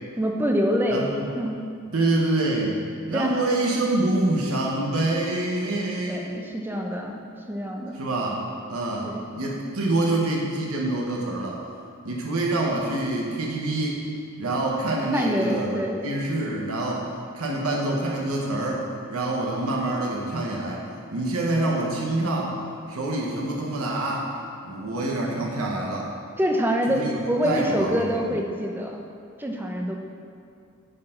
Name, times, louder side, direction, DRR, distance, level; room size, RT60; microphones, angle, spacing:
voice 1, 0.2-1.1 1.4-1.6 3.1-3.4 6.1-8.0 9.0-9.2 15.1-16.0 26.4-29.0 29.4-29.9, equal, 10° right, 1 dB, 0.5 m, -26 dB
voice 2, 0.9-1.3 1.9-2.8 3.0-6.3 7.9-8.4 8.7-11.6 12.0-14.0 14.4-17.1 17.3-20.8 21.1-22.6 22.9-24.3 24.6-26.1 26.9-28.0, right 2 dB, 90° right, -2 dB, 1.0 m, -26 dB
9.9 x 4.5 x 3.8 m, 2.4 s
head